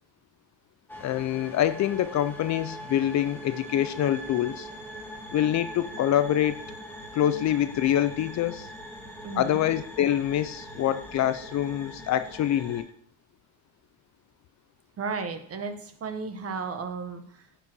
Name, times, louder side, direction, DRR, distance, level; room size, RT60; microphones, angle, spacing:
sound 1, 0.9-12.8, equal, 5° left, 2.2 m, -42 dB
voice 1, 1.0-4.7 5.3-6.6 7.1-8.7 9.4-12.9, left 11 dB, 45° left, 13 dB, 0.6 m, -25 dB
voice 2, 9.2-9.6 15.0-17.5, right 5 dB, 35° right, 7 dB, 1.6 m, -34 dB
9.6 x 5.1 x 6.2 m, 0.65 s
supercardioid pair, 100°, 39 cm